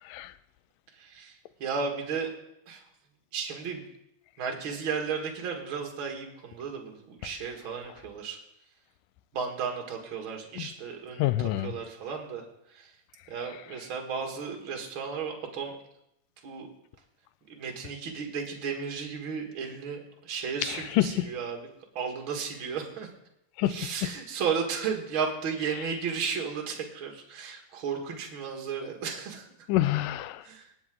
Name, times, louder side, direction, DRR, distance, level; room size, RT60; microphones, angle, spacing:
voice 1, 0.0-0.3 10.6-10.7 11.2-11.8 20.6-21.3 23.6-24.1 29.7-30.5, left 14 dB, 85° left, 15 dB, 2.2 m, -27 dB
voice 2, 0.9-2.3 2.7-2.8 3.3-3.9 4.4-8.4 9.3-12.9 13.3-15.8 16.4-16.7 17.5-21.6 22.0-23.1 23.7-29.5 30.4-30.7, right 6 dB, 45° right, 2 dB, 2.1 m, -34 dB
19.0 x 7.8 x 3.8 m, 0.81 s
omnidirectional pair, 3.8 m